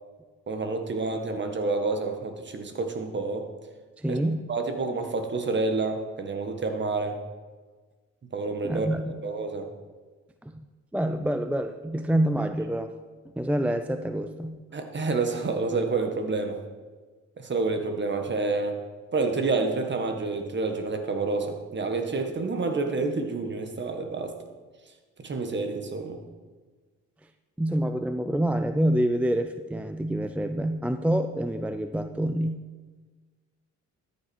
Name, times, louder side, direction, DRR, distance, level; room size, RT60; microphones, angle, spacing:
voice 1, 0.5-3.5 4.1-4.2 4.5-7.2 8.3-8.9 9.2-9.7 14.7-16.6 17.4-18.8 19.1-24.4 25.2-26.2, right 3 dB, 35° right, 6 dB, 1.6 m, -28 dB
voice 2, 4.0-4.5 8.6-9.2 10.4-10.6 10.9-12.9 13.4-14.6 27.6-32.6, right 1 dB, 5° right, 8 dB, 0.5 m, -27 dB
13.0 x 8.7 x 4.5 m, 1.4 s
cardioid pair, 90°, 30 cm